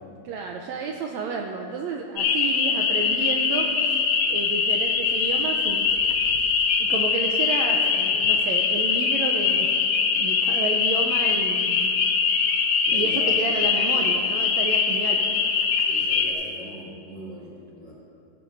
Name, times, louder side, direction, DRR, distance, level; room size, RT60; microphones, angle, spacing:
voice 1, 0.2-4.0 4.3-6.0 6.8-9.7 10.1-11.9 12.6-15.5, right 4 dB, 85° right, 2 dB, 1.6 m, -31 dB
sound 1, 2.2-16.3, left 5 dB, 80° left, 1.3 m, -22 dB
voice 2, 12.8-13.3 13.9-14.2 15.8-17.9, equal, 15° left, -7 dB, 3.2 m, -41 dB
15.5 x 13.5 x 2.6 m, 2.5 s
omnidirectional pair, 3.8 m